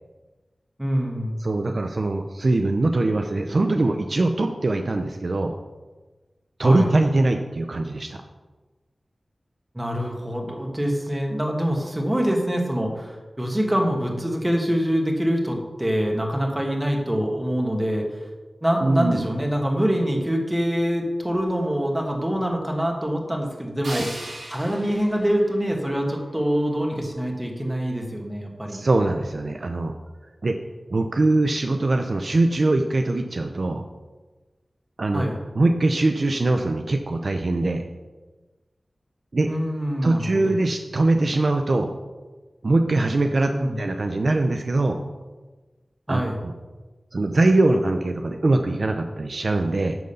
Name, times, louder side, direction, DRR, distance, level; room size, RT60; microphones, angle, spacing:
voice 1, 0.8-1.4 6.6-6.9 9.7-18.0 18.6-28.9 35.1-35.4 39.5-40.5 43.5-43.8 46.1-46.4, equal, 15° right, 0 dB, 1.7 m, -25 dB
voice 2, 1.4-5.5 6.6-8.2 18.8-19.3 23.9-24.1 28.7-29.9 30.4-30.6 30.9-33.8 35.0-35.2 35.6-37.8 39.3-39.5 40.0-41.9 42.6-45.0 46.1-46.5 47.1-50.0, right 2 dB, 60° right, 5 dB, 0.6 m, -22 dB
sound 1, 23.8-26.8, right 1 dB, 80° right, 3.1 m, -39 dB
10.5 x 3.9 x 6.9 m, 1.2 s
wide cardioid pair, 90°, 0 cm